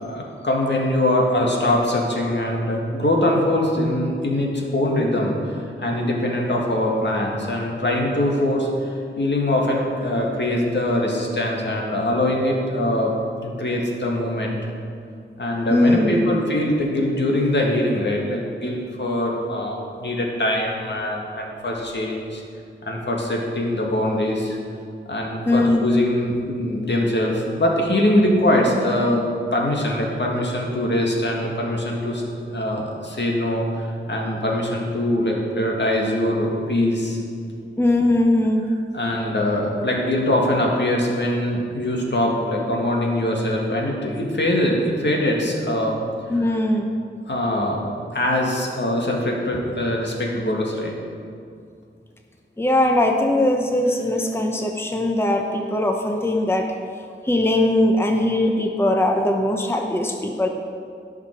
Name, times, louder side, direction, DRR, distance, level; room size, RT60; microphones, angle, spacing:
voice 1, 0.0-13.1 13.4-14.6 15.4-22.4 22.8-24.5 25.1-29.3 29.5-32.2 32.5-37.2 38.9-46.0 46.5-46.6 47.3-47.8 48.1-50.9, left 1 dB, 65° left, -1 dB, 2.0 m, -22 dB
voice 2, 15.7-16.3 25.5-25.9 37.8-38.7 46.3-46.9 52.6-56.7 57.2-60.5, left 1 dB, 10° left, 2 dB, 0.9 m, -20 dB
17.5 x 6.0 x 4.7 m, 2.3 s
wide cardioid pair, 70°, 20 cm